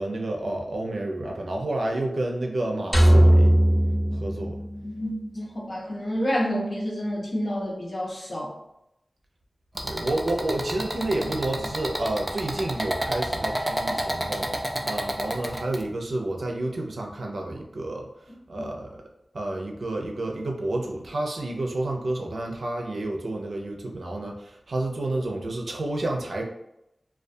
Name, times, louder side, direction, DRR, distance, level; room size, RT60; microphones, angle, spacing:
voice 1, 0.0-3.5 4.2-4.6 9.8-14.5 14.8-18.1 18.5-18.9 19.3-26.4, right 2 dB, 85° right, 1 dB, 0.4 m, -30 dB
sound 1, 2.9-5.2, right 1 dB, 10° left, 0.7 m, -19 dB
voice 2, 4.8-8.6 18.6-18.7, equal, 60° left, -4 dB, 0.7 m, -29 dB
sound 2, 9.8-15.8, right 1 dB, 20° right, 0.4 m, -30 dB
2.3 x 2.2 x 2.6 m, 0.82 s
wide cardioid pair, 65°, 0 cm